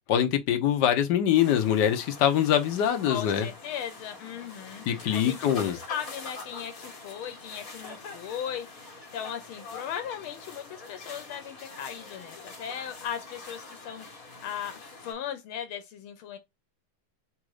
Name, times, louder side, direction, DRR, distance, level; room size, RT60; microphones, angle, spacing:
voice 1, 0.1-3.5 4.9-5.8, left 10 dB, 65° left, 1.2 m, -24 dB
sound 1, 1.3-15.1, left 3 dB, 45° left, 1.6 m, -44 dB
voice 2, 3.0-4.8 5.1-16.4, left 9 dB, 85° left, 1.6 m, -38 dB
4.1 x 2.5 x 4.7 m
omnidirectional pair, 2.3 m